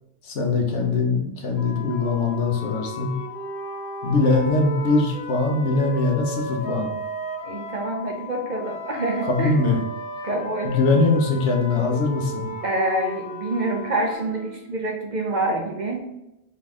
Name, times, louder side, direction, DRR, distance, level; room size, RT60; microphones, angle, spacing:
voice 1, 0.2-3.1 4.0-7.0 9.3-9.8 10.6-12.5, left 3 dB, 85° left, 1 dB, 1.2 m, -22 dB
Wind instrument woodwind instrument, 1.5-7.9 8.6-14.6, right 2 dB, 40° left, 1.8 m, -36 dB
sound 1, 1.6-14.1, left 15 dB, 65° left, 0.8 m, -40 dB
voice 2, 7.4-9.6 10.2-10.7 12.6-16.0, right 2 dB, 45° right, 1 dB, 0.8 m, -26 dB
3.9 x 3.3 x 3.6 m, 0.89 s
omnidirectional pair, 1.2 m